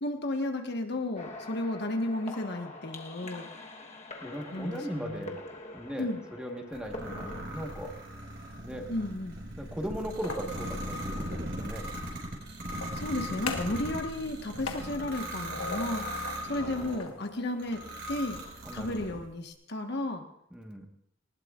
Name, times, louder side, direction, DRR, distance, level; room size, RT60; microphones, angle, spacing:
voice 1, 0.0-3.5 4.5-5.3 6.0-6.2 8.9-9.4 12.9-18.4 18.7-20.3, left 1 dB, 55° left, 4 dB, 1.4 m, -33 dB
sound 1, 1.2-7.4, left 2 dB, 35° left, 1.2 m, -45 dB
voice 2, 4.2-7.9 8.6-8.9 9.6-11.9 16.6-17.2 18.6-19.2 20.5-20.9, equal, 5° right, 2 dB, 1.4 m, -38 dB
sound 2, 6.7-17.0 17.6-19.2, equal, 60° right, 5.1 m, -38 dB
sound 3, 10.0-11.5 12.6-13.9 14.1-16.5 16.8-18.2, left 4 dB, 90° left, 1.4 m, -41 dB
19.5 x 19.5 x 2.5 m, 0.74 s
head